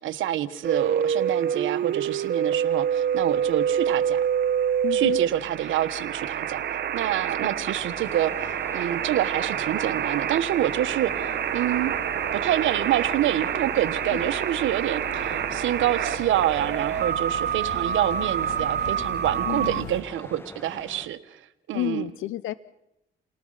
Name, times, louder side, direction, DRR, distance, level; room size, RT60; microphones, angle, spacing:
voice 1, 0.0-4.3 4.9-6.6 6.9-11.9 12.3-21.4 21.7-22.0, right 12 dB, 80° right, 11 dB, 1.4 m, -27 dB
sound 1, 0.6-19.8, right 9 dB, 55° right, 1.0 m, -27 dB
sound 2, 2.6-20.0, left 4 dB, 60° left, 1.7 m, -44 dB
voice 2, 4.8-5.2 7.6-7.7 13.7-13.8 14.1-14.2 19.5-19.9 21.7-22.5, left 15 dB, 85° left, 16 dB, 0.7 m, -31 dB
sound 3, 7.8-21.1, left 1 dB, 10° left, 1.7 m, -44 dB
29.0 x 18.5 x 5.7 m, 0.85 s
cardioid pair, 90°, 20 cm